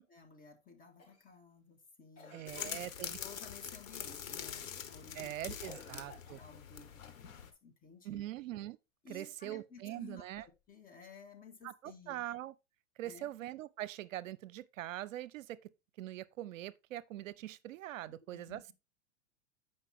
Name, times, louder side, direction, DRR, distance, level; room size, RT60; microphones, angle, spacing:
voice 1, 0.1-2.8 3.1-8.2 9.0-12.2 13.0-13.3 18.1-18.7, left 4 dB, 20° left, 1.7 m, -55 dB
Cough, 1.0-1.4 2.1-2.9 4.1-4.4 5.6-6.7 9.8-10.6 12.0-12.1, left 3 dB, 35° left, 3.7 m, -57 dB
voice 2, 2.3-3.2 5.1-6.4 8.0-8.8 9.1-10.4 11.6-12.5 13.0-15.7 16.0-18.7, right 14 dB, 70° right, 0.6 m, -43 dB
sound 1, 2.5-7.5, left 8 dB, 75° left, 1.3 m, -44 dB
8.1 x 5.3 x 3.5 m
hypercardioid pair, 110°, 40 cm